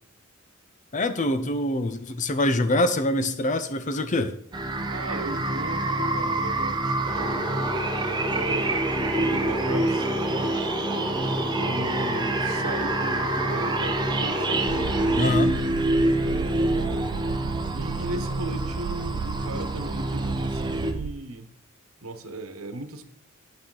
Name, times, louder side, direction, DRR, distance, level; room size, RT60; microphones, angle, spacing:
voice 1, 0.9-4.3 15.1-15.6, left 1 dB, 35° left, 10 dB, 0.7 m, -24 dB
sound 1, 4.5-20.9, right 2 dB, 20° right, 0.8 m, -27 dB
voice 2, 4.9-7.5 8.3-10.1 11.5-14.7 16.2-17.1 17.7-21.5 22.0-23.0, right 2 dB, 85° right, 8 dB, 1.1 m, -36 dB
sound 2, 7.1-15.2, equal, 5° left, 3.7 m, -31 dB
sound 3, 14.7-21.1, right 7 dB, 65° right, 0.4 m, -34 dB
8.8 x 8.2 x 3.9 m, 0.68 s
head